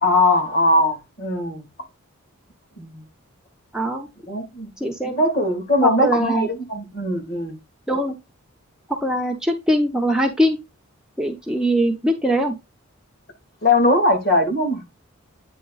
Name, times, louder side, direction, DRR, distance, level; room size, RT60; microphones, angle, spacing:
voice 1, 0.0-1.7 2.8-3.0 4.3-4.7 5.2-7.6 13.6-14.8, left 1 dB, 45° left, 2.7 m, -20 dB
voice 2, 3.7-4.1 4.8-5.2 5.8-6.5 7.9-8.2 9.0-10.6 11.2-12.6, equal, 5° right, 0.7 m, -21 dB
9.1 x 3.4 x 4.0 m
head